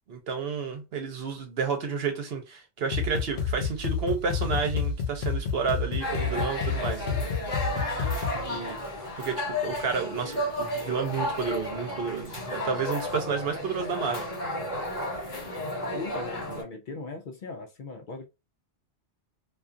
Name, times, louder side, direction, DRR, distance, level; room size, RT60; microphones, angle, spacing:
voice 1, 0.1-7.2 8.4-8.8 9.2-14.3, right 5 dB, 70° right, 1.0 m, -31 dB
sound 1, 2.9-8.5, left 6 dB, 90° left, 0.9 m, -30 dB
sound 2, 6.0-16.6, left 1 dB, 40° left, 1.3 m, -33 dB
voice 2, 8.2-8.7 15.9-18.3, left 3 dB, 60° left, 0.6 m, -39 dB
2.4 x 2.3 x 2.5 m
omnidirectional pair, 1.1 m